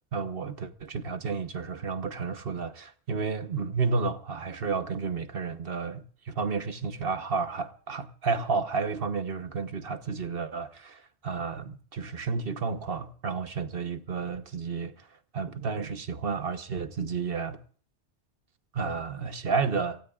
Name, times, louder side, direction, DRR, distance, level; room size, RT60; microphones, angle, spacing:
voice 1, 0.1-15.1 15.3-17.6 18.7-20.0, right 4 dB, 55° right, 1.3 m, -31 dB
29.0 x 19.0 x 2.4 m
omnidirectional pair, 1.2 m